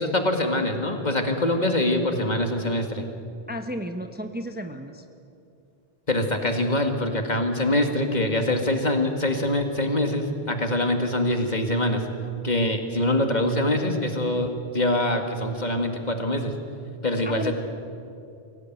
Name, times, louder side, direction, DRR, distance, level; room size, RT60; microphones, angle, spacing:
voice 1, 0.0-3.1 6.1-12.0 12.4-16.5 17.0-17.5, left 1 dB, 45° left, 5 dB, 2.2 m, -24 dB
voice 2, 3.5-5.0 17.2-17.5, equal, 10° right, 6 dB, 1.0 m, -33 dB
23.5 x 17.0 x 9.4 m, 2.5 s
omnidirectional pair, 1.1 m